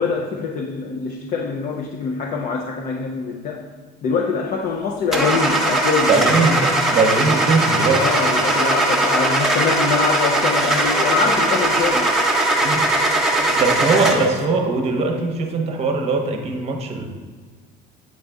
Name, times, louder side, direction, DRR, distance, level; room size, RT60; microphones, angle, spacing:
voice 1, 0.0-3.7 4.0-6.6 7.9-12.1, left 5 dB, 40° left, 2 dB, 0.5 m, -24 dB
Car / Engine starting, 5.1-14.4, right 2 dB, ahead, 0.6 m, -19 dB
voice 2, 6.1-8.0 12.6-12.9 13.6-17.1, right 3 dB, 35° right, 3 dB, 0.9 m, -20 dB
8.0 x 4.0 x 3.4 m, 1.5 s
cardioid pair, 140°, 19 cm